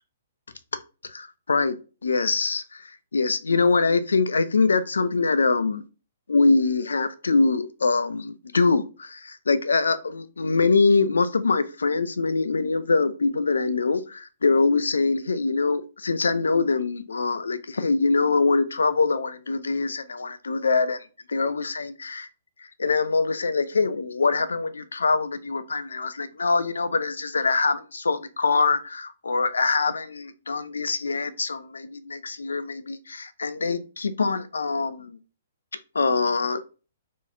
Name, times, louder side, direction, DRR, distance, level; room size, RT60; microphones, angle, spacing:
voice 1, 1.0-1.7 2.0-5.8 6.3-22.3 22.6-35.2 35.9-36.6, left 4 dB, 85° left, 0.4 m, -24 dB
3.7 x 3.1 x 2.6 m
hypercardioid pair, 130°, 0 cm